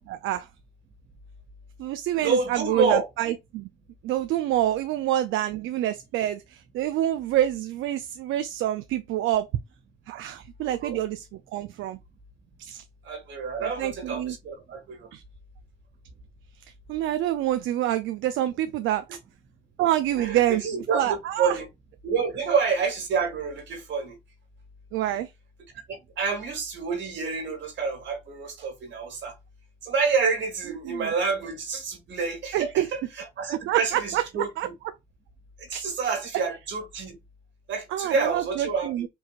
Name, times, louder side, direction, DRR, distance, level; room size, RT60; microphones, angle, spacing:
voice 1, 0.1-0.5 1.8-3.7 4.0-9.5 10.1-12.0 12.6-12.8 13.6-14.3 15.1-15.2 16.9-19.1 19.8-20.6 20.9-21.6 24.9-25.3 30.8-31.1 32.5-32.9 33.7-34.2 34.6-34.7 35.7-35.8 37.9-39.1, right 13 dB, 90° right, 0.4 m, -27 dB
voice 2, 2.2-3.1 10.6-11.0 13.0-15.1 20.1-21.7 22.0-24.2 26.2-29.3 29.8-34.7 35.6-37.2 37.7-39.1, right 5 dB, 65° right, 2.0 m, -28 dB
4.6 x 2.9 x 2.4 m
cardioid pair, 90°, 20 cm